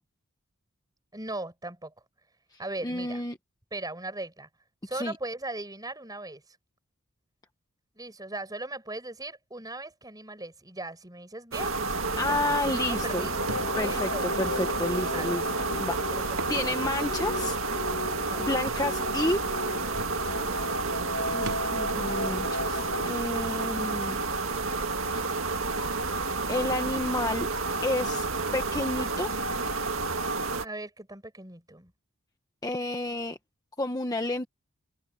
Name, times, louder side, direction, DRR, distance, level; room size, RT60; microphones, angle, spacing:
voice 1, 1.1-1.9 2.6-3.2 3.7-4.5 4.8-6.6 7.9-11.8 12.1-14.3 15.1-15.4 16.1-16.8 18.2-18.5 20.4-21.4 30.6-31.9, right 2 dB, 15° right, 7.2 m, -39 dB
voice 2, 2.8-3.4 4.9-5.1 12.2-13.3 13.8-15.5 15.8-17.6 18.4-19.4 21.3-24.2 26.5-27.5 27.8-28.3 28.5-29.3 32.6-33.4 33.8-34.5, left 2 dB, 15° left, 1.1 m, -30 dB
sound 1, 11.5-30.7, right 3 dB, 65° right, 2.0 m, -30 dB
sound 2, 12.5-23.1, left 2 dB, 55° left, 1.4 m, -37 dB
Thump thud, 13.5-13.7 14.8-14.9 16.3-16.6 17.0-17.1 18.7-18.9 19.7-19.8 20.0-20.2 21.4-21.7, right 3 dB, 80° right, 3.7 m, -38 dB
head